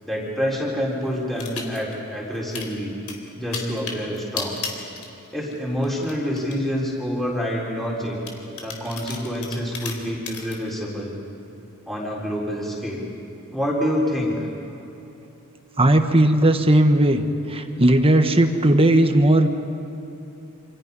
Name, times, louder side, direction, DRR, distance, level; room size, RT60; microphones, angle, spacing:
voice 1, 0.0-2.9 3.3-4.6 5.3-8.2 8.6-11.1 11.9-13.1 13.5-14.5, equal, ahead, -5 dB, 3.9 m, -27 dB
sound 1, 1.4-2.0 2.3-2.7 3.1-5.6 5.8-6.6 7.2-7.3 8.3-10.6, left 5 dB, 75° left, 3.4 m, -34 dB
voice 2, 15.8-17.2 17.5-19.5, right 1 dB, 25° right, 6 dB, 1.4 m, -17 dB
28.5 x 27.0 x 5.5 m, 2.9 s
head